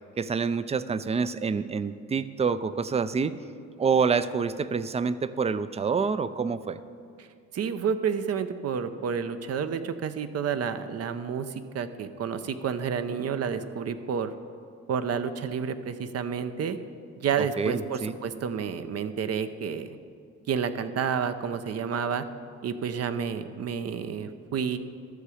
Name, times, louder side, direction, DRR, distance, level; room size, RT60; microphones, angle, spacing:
voice 1, 0.2-3.3 3.8-6.8 17.4-18.2, right 5 dB, 20° right, 15 dB, 0.4 m, -27 dB
voice 2, 7.5-14.3 14.9-16.8 17.2-19.9 20.5-22.2 22.6-24.8, right 7 dB, 55° right, 10 dB, 0.7 m, -30 dB
12.5 x 6.8 x 5.0 m, 2.3 s
cardioid pair, 90°, 30 cm